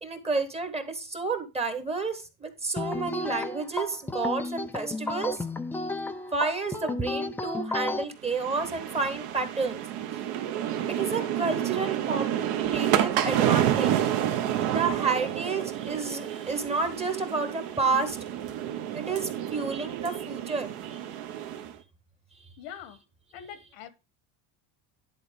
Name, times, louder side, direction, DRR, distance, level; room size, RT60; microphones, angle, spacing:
voice 1, 0.0-5.4 6.3-9.8 10.9-12.4 12.7-13.9 14.7-18.2 18.9-21.0, right 4 dB, 15° right, 1.2 m, -30 dB
sound 1, 2.8-8.0, left 3 dB, 5° left, 0.3 m, -32 dB
sound 2, 8.2-21.7, right 11 dB, 60° right, 1.4 m, -29 dB
voice 2, 22.6-23.0 23.3-23.9, left 9 dB, 75° left, 1.4 m, -43 dB
11.0 x 4.2 x 5.2 m
cardioid pair, 145°, 44 cm